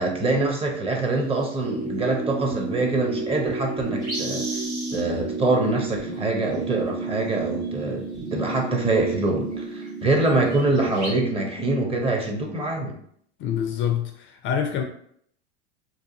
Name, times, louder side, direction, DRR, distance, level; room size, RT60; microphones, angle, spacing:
voice 1, 0.0-4.5 4.9-12.9, right 2 dB, 15° right, 1 dB, 0.6 m, -24 dB
sound 1, 1.1-1.6 2.7-2.8 3.1-3.2 3.4-5.1 5.5-6.6 7.6-7.8 8.1-9.1 9.5-9.6 9.8-10.1 10.4-11.1, right 1 dB, 85° right, 1.3 m, -36 dB
sound 2, 1.6-10.3, right 3 dB, 65° right, 1.3 m, -31 dB
voice 2, 13.4-14.8, left 8 dB, 40° left, 4 dB, 0.4 m, -26 dB
2.7 x 2.3 x 2.7 m, 0.65 s
hypercardioid pair, 90°, 33 cm